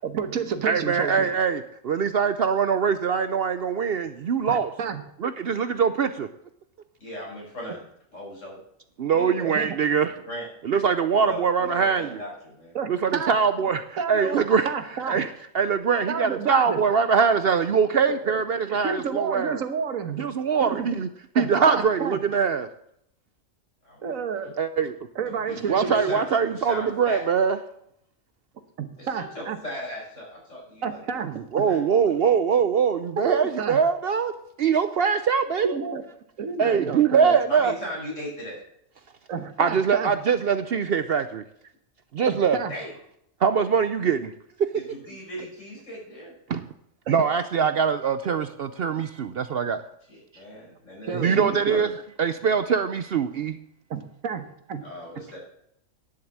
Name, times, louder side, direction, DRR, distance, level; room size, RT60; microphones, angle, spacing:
voice 1, 0.0-1.3 4.5-5.0 9.4-9.8 12.7-13.4 14.0-15.2 16.1-16.8 18.1-20.3 20.6-21.0 21.3-22.2 24.0-24.6 25.1-26.1 28.8-29.6 30.8-31.7 33.2-33.8 35.6-36.0 36.4-37.4 39.3-40.1 42.3-42.7 47.1-47.2 51.0-51.8 53.9-54.8, right 6 dB, 85° right, 9 dB, 1.5 m, -30 dB
voice 2, 0.7-4.7 5.2-6.3 9.0-10.1 10.6-12.2 12.9-14.7 15.1-15.3 15.5-19.6 20.2-21.1 21.4-22.7 24.6-25.0 25.7-27.6 31.5-34.3 34.6-35.8 36.6-37.7 39.6-41.4 42.1-42.6 43.4-44.3 46.5-46.7 47.1-49.8 51.1-51.9 52.2-53.6, right 6 dB, 60° right, 11 dB, 0.7 m, -23 dB
voice 3, 7.0-7.8 8.1-8.6 9.1-9.5 10.1-10.5 11.2-12.7 23.8-24.2 25.2-27.2 29.0-31.2 31.7-32.1 37.5-38.6 42.7-42.9 44.7-46.3 50.1-51.9 54.8-55.4, equal, 65° left, -4 dB, 5.9 m, -38 dB
10.5 x 7.5 x 7.4 m, 0.73 s
omnidirectional pair, 1.4 m